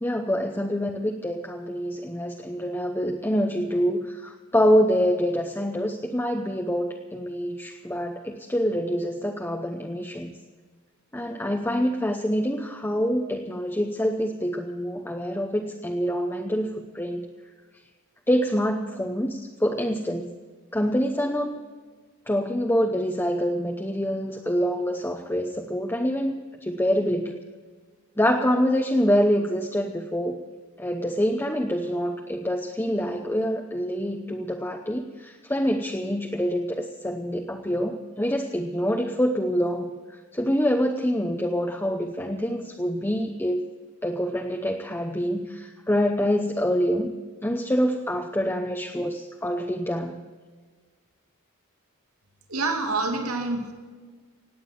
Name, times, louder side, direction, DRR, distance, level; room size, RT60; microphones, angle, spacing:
voice 1, 0.0-10.4 11.1-17.3 18.3-20.3 20.7-21.6 22.3-27.4 28.2-30.4 30.8-39.9 40.3-43.6 44.0-47.1 47.4-50.1, equal, 10° left, 3 dB, 0.8 m, -26 dB
voice 2, 52.5-53.7, right 3 dB, 80° right, 3 dB, 2.5 m, -27 dB
18.0 x 9.0 x 7.7 m, 1.5 s
head